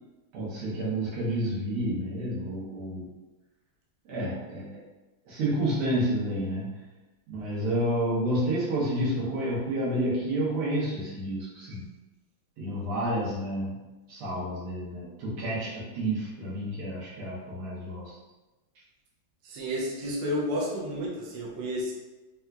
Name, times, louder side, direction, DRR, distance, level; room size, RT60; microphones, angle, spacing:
voice 1, 0.3-3.1 4.1-4.8 5.3-6.9 7.3-11.9 12.6-18.2, right 1 dB, 85° right, -6 dB, 1.9 m, -30 dB
voice 2, 19.4-21.9, equal, 65° right, -4 dB, 1.3 m, -31 dB
4.4 x 2.5 x 2.3 m, 1.1 s
omnidirectional pair, 2.3 m